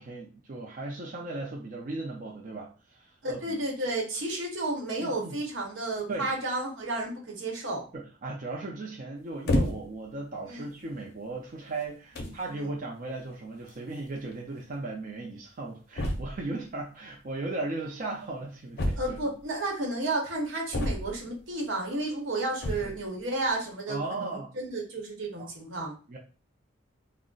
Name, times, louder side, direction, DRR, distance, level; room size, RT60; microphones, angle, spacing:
voice 1, 0.0-3.6 5.0-5.4 6.1-6.3 7.9-19.2 22.8-22.9 23.9-24.5 25.4-25.5 26.1-26.2, right 2 dB, 45° right, -1 dB, 0.4 m, -37 dB
voice 2, 3.2-7.9 10.5-10.6 12.1-12.8 19.0-26.0, right 2 dB, 80° right, -1 dB, 0.9 m, -32 dB
sound 1, 9.5-10.1 10.8-11.0 11.8-11.9 12.2-12.5 13.7-13.8 14.0-14.1 14.3-14.4 16.0-16.5 18.8-19.4 20.7-21.4 22.5-23.0, left 1 dB, 55° left, 0.5 m, -29 dB
2.3 x 2.0 x 3.7 m, 0.36 s
head